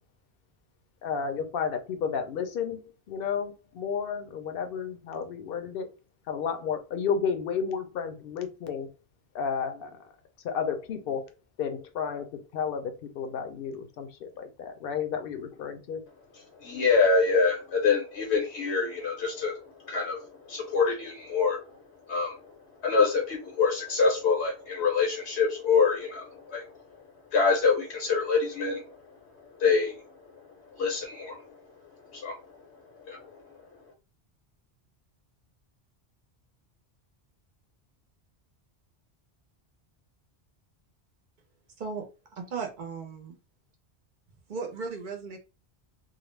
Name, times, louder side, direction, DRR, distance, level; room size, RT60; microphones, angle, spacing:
voice 1, 1.0-2.8 3.1-5.9 6.3-8.9 9.3-10.0 10.4-11.3 11.6-16.0, left 6 dB, 65° left, 6 dB, 0.7 m, -32 dB
voice 2, 16.6-19.5 19.8-21.6 22.1-22.4 22.8-26.7 27.3-29.0 29.6-30.0 30.7-31.4 32.1-32.4 33.0-33.3, left 4 dB, 85° left, -1 dB, 1.0 m, -25 dB
voice 3, 42.3-43.3 44.5-45.4, right 5 dB, 55° right, 4 dB, 0.6 m, -36 dB
2.4 x 2.0 x 3.1 m, 0.31 s
omnidirectional pair, 1.1 m